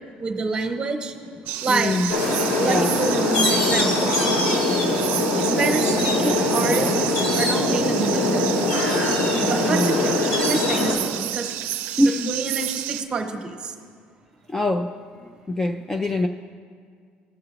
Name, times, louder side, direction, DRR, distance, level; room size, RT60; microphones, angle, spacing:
voice 1, 0.2-1.1 1.6-2.2 2.5-4.1 5.4-8.6 9.4-11.5 11.9-13.7, right 3 dB, 25° right, 4 dB, 1.0 m, -27 dB
voice 2, 1.4-2.1 2.4-2.9 9.7-10.0 12.0-12.3 14.5-14.9 15.5-16.3, left 1 dB, 10° left, 5 dB, 0.3 m, -24 dB
sound 1, 1.5-13.0, right 14 dB, 80° right, 0.4 m, -30 dB
sound 2, 2.1-11.0, left 2 dB, 80° left, 2.1 m, -22 dB
17.0 x 6.7 x 2.9 m, 2.1 s
cardioid pair, 145°, 3 cm